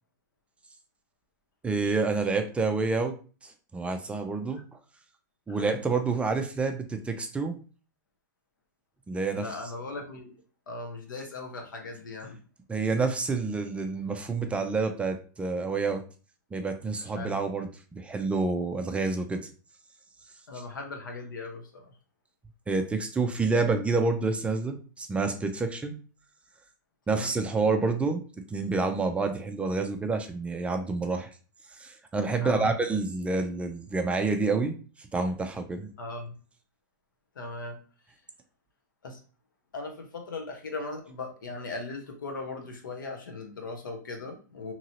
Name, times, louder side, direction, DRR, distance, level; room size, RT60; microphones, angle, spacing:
voice 1, 1.6-3.2 3.4-4.6 5.5-7.6 9.1-9.5 12.7-16.0 16.5-19.5 22.7-25.9 27.1-28.2 28.5-31.3 31.7-35.9, right 3 dB, 10° right, 6 dB, 0.4 m, -28 dB
voice 2, 9.3-10.4 10.7-12.4 17.0-17.4 20.5-21.9 27.1-27.3 32.4-32.7 36.0-36.3 37.3-37.8 39.0-39.2 39.7-44.7, left 3 dB, 90° left, 3 dB, 1.0 m, -38 dB
2.9 x 2.7 x 2.8 m, 0.36 s
hypercardioid pair, 120°, 10 cm